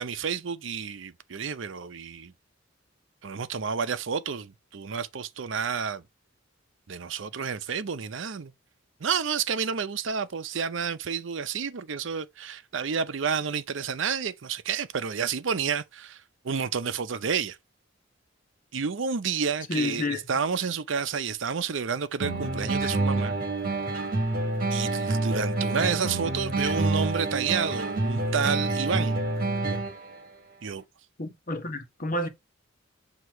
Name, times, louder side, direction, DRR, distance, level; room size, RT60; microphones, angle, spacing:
voice 1, 0.0-2.3 3.2-6.0 6.9-8.5 9.0-17.6 18.7-23.4 24.7-29.2 30.6-30.8, right 6 dB, 65° right, 0.6 m, -30 dB
voice 2, 19.7-20.2 31.2-32.3, left 2 dB, 45° left, 1.2 m, -30 dB
sound 1, 22.2-30.2, right 2 dB, 45° right, 1.5 m, -28 dB
8.0 x 2.9 x 4.5 m
head